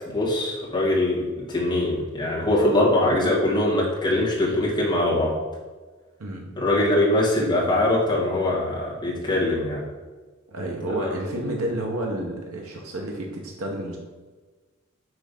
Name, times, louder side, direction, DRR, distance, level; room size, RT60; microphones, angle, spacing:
voice 1, 0.1-5.4 6.6-9.8 11.0-11.2, left 1 dB, 20° left, -5 dB, 1.6 m, -22 dB
voice 2, 10.5-14.0, right 1 dB, 80° right, 0 dB, 0.9 m, -30 dB
5.9 x 3.3 x 5.1 m, 1.3 s
head